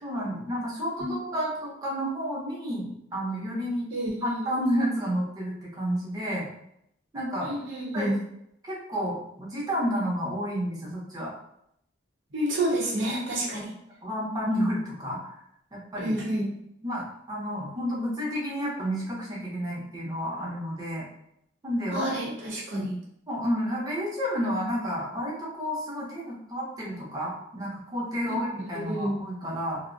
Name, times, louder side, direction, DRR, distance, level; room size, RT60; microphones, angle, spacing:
voice 1, 0.0-3.9 4.2-6.5 7.1-7.5 7.9-8.2 8.6-11.3 14.0-15.3 15.7-16.2 16.8-21.0 21.6-22.1 23.3-29.8, equal, 20° right, -5 dB, 0.6 m, -30 dB
voice 2, 3.9-4.4 7.4-8.1 12.3-13.7 16.0-16.5 21.9-22.9 28.3-28.4 28.9-29.1, right 1 dB, 80° right, -3 dB, 0.7 m, -29 dB
2.4 x 2.0 x 2.5 m, 0.75 s
head